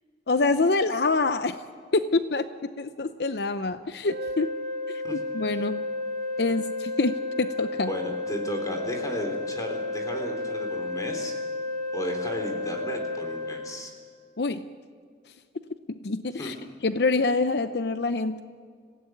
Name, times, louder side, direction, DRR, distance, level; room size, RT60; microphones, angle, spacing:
voice 1, 0.3-1.6 1.9-4.5 5.1-5.9 6.4-7.9 14.4-14.7 15.9-16.5 16.8-18.4, left 3 dB, 75° left, 11 dB, 0.7 m, -26 dB
sound 1, 4.0-13.7, left 2 dB, 50° right, 3.6 m, -32 dB
voice 2, 7.9-11.3 11.9-13.9 16.4-16.5, equal, 20° left, 3 dB, 3.7 m, -34 dB
26.0 x 16.5 x 9.3 m, 2.1 s
head